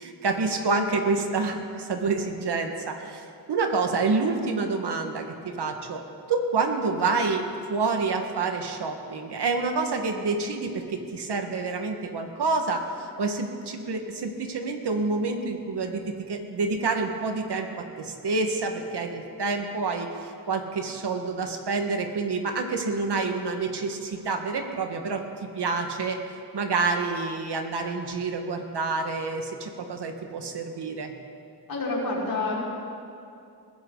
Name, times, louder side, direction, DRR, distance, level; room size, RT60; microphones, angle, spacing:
voice 1, 0.0-6.0 6.3-25.2 25.5-26.2 26.5-31.1, right 4 dB, 70° right, 4 dB, 1.7 m, -28 dB
voice 2, 31.7-32.6, left 2 dB, 60° left, -5 dB, 5.0 m, -28 dB
22.0 x 15.5 x 4.0 m, 2.5 s
cardioid pair, 80°, 41 cm